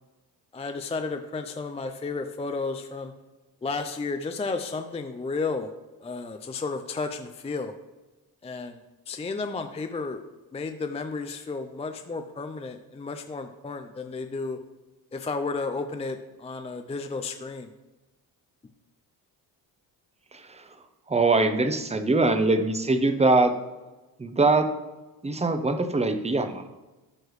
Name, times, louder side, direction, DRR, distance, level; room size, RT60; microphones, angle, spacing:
voice 1, 0.5-3.1 3.6-5.7 6.0-7.7 8.4-8.8 9.1-10.2 10.5-14.6 15.1-17.7, left 4 dB, 15° left, 7 dB, 0.4 m, -32 dB
voice 2, 20.3-23.5 24.2-24.7 25.2-26.6, right 3 dB, 15° right, 8 dB, 0.8 m, -23 dB
13.0 x 4.7 x 3.2 m, 1.1 s
cardioid pair, 80°, 41 cm